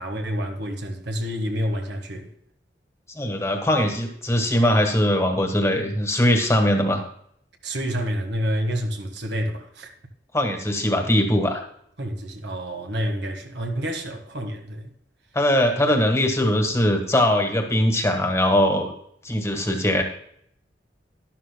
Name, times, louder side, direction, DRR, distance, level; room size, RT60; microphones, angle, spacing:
voice 1, 0.0-2.3 7.6-9.9 12.0-14.9, equal, 70° right, 1.6 m, -28 dB
voice 2, 3.1-7.0 10.3-11.6 15.3-18.9 19.2-20.0, left 1 dB, 15° left, 1.5 m, -21 dB
12.0 x 11.5 x 2.2 m
head